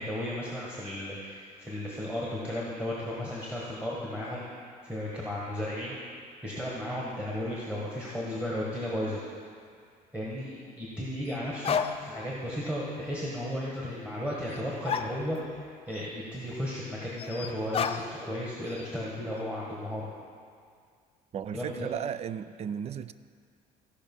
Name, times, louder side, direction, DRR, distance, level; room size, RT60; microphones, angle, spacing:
voice 1, 0.0-4.4 4.8-5.9 6.4-9.2 10.1-20.1 21.5-21.9, left 1 dB, 5° right, -6 dB, 1.5 m, -34 dB
sound 1, 9.7-9.8 11.3-11.4 11.6-12.3 12.6-12.7 14.5-14.6 14.9-15.7 15.9-16.0 17.2-18.4 18.7-19.1, left 7 dB, 35° left, 0.5 m, -33 dB
voice 2, 21.3-23.1, right 8 dB, 40° right, 15 dB, 0.4 m, -35 dB
15.5 x 5.3 x 5.5 m, 2.2 s
cardioid pair, 110°, 17 cm